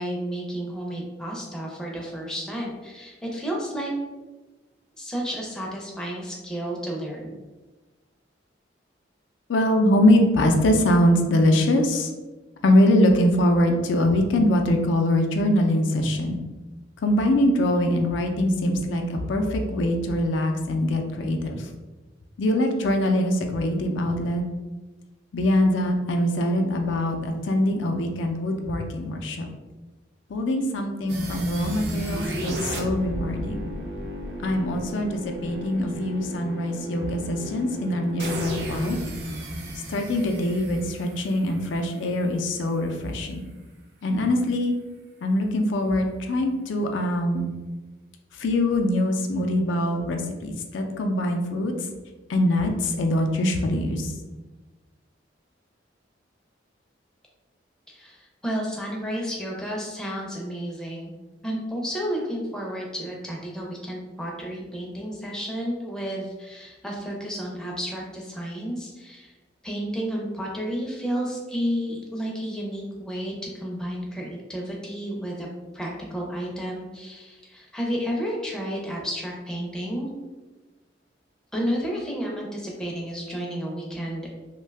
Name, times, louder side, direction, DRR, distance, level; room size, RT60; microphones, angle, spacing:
voice 1, 0.0-3.9 5.0-7.3 57.9-61.1 61.4-69.3 69.6-75.5 75.7-80.1 81.5-84.4, equal, 5° left, -2 dB, 0.4 m, -31 dB
voice 2, 9.5-12.1 12.6-16.4 17.0-21.7 22.4-24.4 25.3-29.5 30.3-33.7 34.4-39.0 39.9-43.4 44.0-44.7 45.2-47.5 48.3-51.7 52.3-54.1, left 1 dB, 80° left, 4 dB, 0.4 m, -23 dB
sound 1, 31.1-42.0, equal, 60° right, 0.5 m, -33 dB
2.6 x 2.2 x 3.3 m, 1.2 s
head